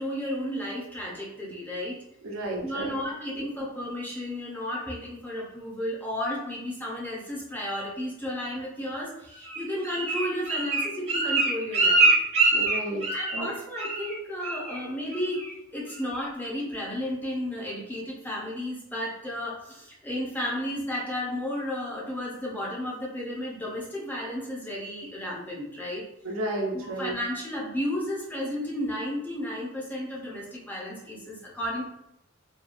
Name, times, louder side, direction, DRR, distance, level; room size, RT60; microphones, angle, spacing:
voice 1, 0.0-2.0 2.6-12.1 13.1-15.5 15.7-26.0 26.7-31.8, left 1 dB, 10° left, -4 dB, 0.5 m, -33 dB
voice 2, 2.2-2.9 12.5-13.5 26.2-27.1, right 1 dB, 75° right, -1 dB, 0.7 m, -32 dB
Bird, 9.4-13.5 13.8-14.2 14.4-14.8 15.1-15.5 15.9-16.0, right 3 dB, 30° right, 0.6 m, -24 dB
2.8 x 2.3 x 2.4 m, 0.79 s
head